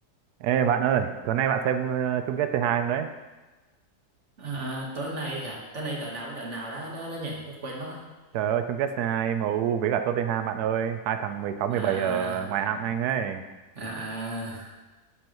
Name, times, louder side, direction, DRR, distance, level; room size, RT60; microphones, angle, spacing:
voice 1, 0.4-3.1 8.3-13.4, right 9 dB, 85° right, 9 dB, 1.1 m, -26 dB
voice 2, 4.4-8.1 11.7-12.5 13.7-14.7, right 2 dB, 50° right, -2 dB, 1.7 m, -35 dB
7.7 x 7.1 x 3.0 m, 1.2 s
omnidirectional pair, 1.6 m